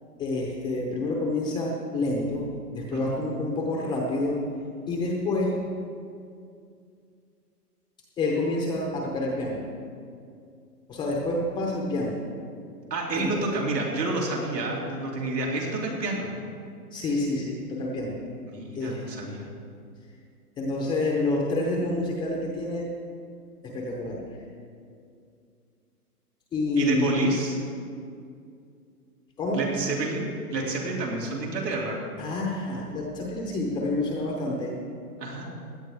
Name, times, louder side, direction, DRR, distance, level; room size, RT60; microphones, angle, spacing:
voice 1, 0.2-4.4 4.9-5.6 8.2-9.6 10.9-12.2 13.2-13.3 16.9-18.2 18.8-19.0 20.6-22.9 23.6-24.2 26.5-27.2 29.4-29.6 32.2-34.7, left 2 dB, 10° left, -1 dB, 0.7 m, -28 dB
voice 2, 12.9-16.3 18.5-19.5 26.8-27.6 29.5-32.0 35.2-35.5, right 2 dB, 90° right, -2 dB, 2.9 m, -29 dB
16.5 x 11.0 x 3.5 m, 2.4 s
hypercardioid pair, 140°, 48 cm